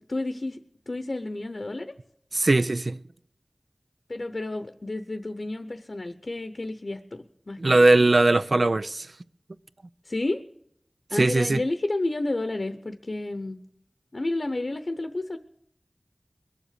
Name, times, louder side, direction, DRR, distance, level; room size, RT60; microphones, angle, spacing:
voice 1, 0.1-0.6 0.9-2.0 4.1-7.9 10.1-10.4 11.1-13.6 14.1-15.4, left 2 dB, 55° left, 0.8 m, -31 dB
voice 2, 2.3-3.0 7.6-9.1 11.1-11.6, right 2 dB, 60° right, 0.5 m, -20 dB
22.0 x 7.5 x 6.6 m
wide cardioid pair, 60°, 0 cm